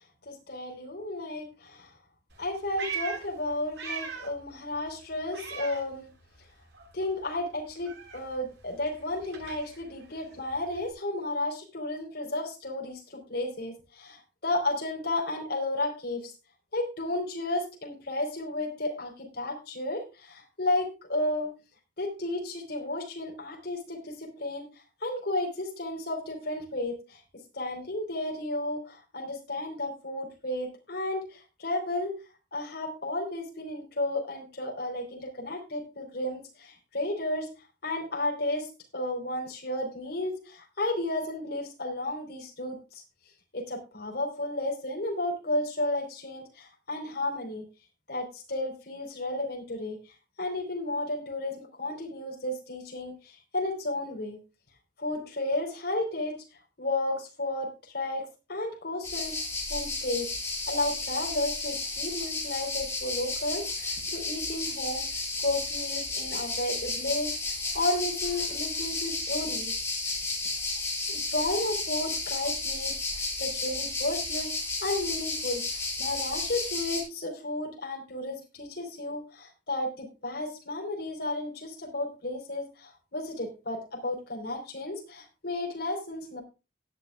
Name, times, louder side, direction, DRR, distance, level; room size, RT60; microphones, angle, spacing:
voice 1, 0.3-1.9 2.4-6.1 6.9-16.3 16.7-21.5 22.0-27.2 27.5-32.1 32.5-37.5 37.8-43.0 43.5-47.6 48.1-54.4 55.0-56.4 56.8-59.4 59.7-60.3 60.7-65.1 65.4-67.4 67.7-69.7 70.0-70.2 71.1-74.5 74.8-86.4, left 2 dB, 65° left, 1 dB, 4.3 m, -33 dB
Meow, 2.3-4.5 4.8-6.5 6.7-10.9, right 6 dB, 70° right, 7.8 m, -41 dB
sound 1, 59.0-77.0, left 3 dB, 15° left, 7.7 m, -32 dB
17.5 x 9.4 x 2.4 m, 0.29 s
head